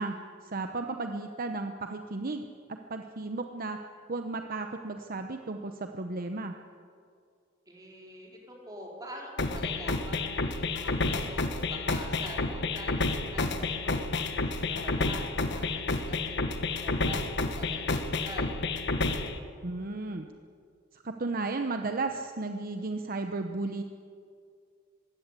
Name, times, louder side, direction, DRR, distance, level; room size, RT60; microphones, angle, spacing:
voice 1, 0.0-2.5 2.9-3.8 4.1-6.5 19.6-20.3 20.9-23.8, right 3 dB, 45° right, 5 dB, 0.9 m, -34 dB
voice 2, 7.7-15.2 15.5-18.6, equal, 20° right, -1 dB, 4.6 m, -46 dB
sound 1, 9.4-19.4, left 3 dB, 55° left, 1.5 m, -30 dB
22.0 x 16.5 x 8.4 m, 2.3 s
head